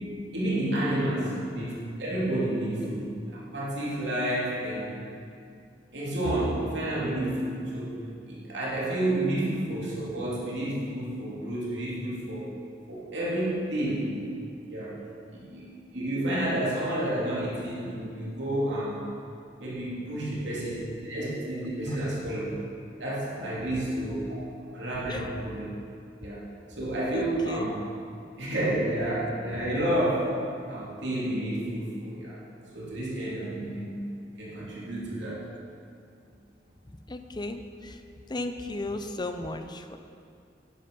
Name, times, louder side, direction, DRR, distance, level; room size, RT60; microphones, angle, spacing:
voice 1, 0.3-5.0 5.9-12.5 12.9-14.1 14.7-15.0 15.3-19.1 19.6-22.5 23.0-24.4 24.7-25.6 26.2-27.7 28.4-30.4 30.7-32.4 32.7-34.0 34.4-35.4, right 1 dB, 70° right, -6 dB, 3.2 m, -30 dB
voice 2, 27.1-27.7 37.1-38.0 38.3-40.0, left 2 dB, 25° left, 8 dB, 0.7 m, -35 dB
11.0 x 11.0 x 5.5 m, 2.4 s
head